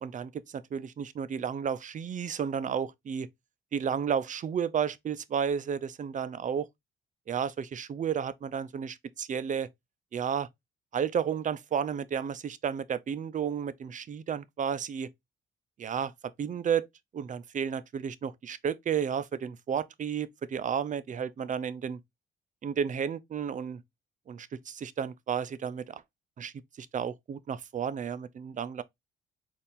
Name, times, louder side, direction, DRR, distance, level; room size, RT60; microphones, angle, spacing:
voice 1, 0.0-3.3 3.7-6.7 7.3-9.7 10.1-10.5 10.9-15.1 15.8-16.1 16.4-16.9 17.1-22.0 22.6-23.8 24.3-26.0 26.4-28.8, right 7 dB, 40° right, 0.4 m, -32 dB
4.2 x 2.5 x 3.6 m
cardioid pair, 90°, 20 cm